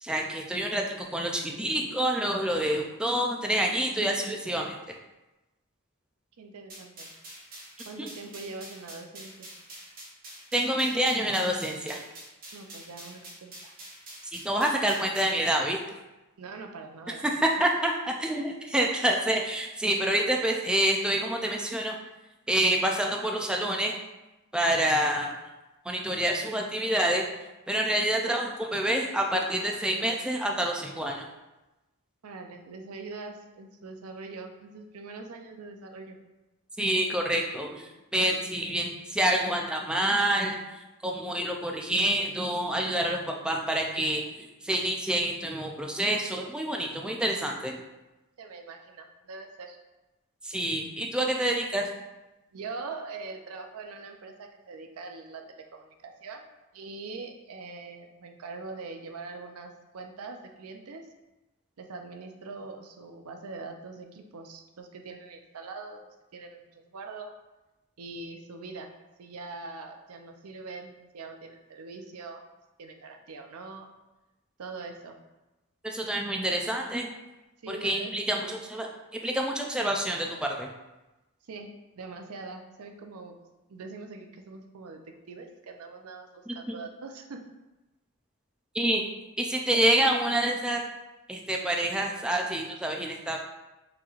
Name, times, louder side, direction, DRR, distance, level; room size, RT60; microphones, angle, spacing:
voice 1, 0.0-4.8 8.0-8.1 10.5-12.0 14.2-15.8 17.2-22.0 22.5-24.0 24.5-25.3 25.8-27.3 27.7-31.3 36.8-47.8 50.4-51.9 75.8-77.1 77.7-80.7 86.5-86.7 88.7-89.0 89.4-90.8 91.3-93.4, right 1 dB, 5° right, 1 dB, 0.3 m, -27 dB
voice 2, 6.4-7.1 7.9-9.5 12.5-13.7 16.4-17.3 32.2-36.2 38.4-38.6 48.4-49.8 52.5-56.4 56.7-61.1 61.8-66.0 66.3-67.3 68.0-68.9 69.2-72.5 72.8-73.9 74.6-75.2 77.6-78.1 78.4-78.6 81.5-83.4 83.7-87.4, right 3 dB, 80° right, 4 dB, 0.5 m, -42 dB
sound 1, 6.7-15.4, right 1 dB, 40° right, 0.9 m, -46 dB
5.9 x 3.1 x 2.4 m, 1.0 s
head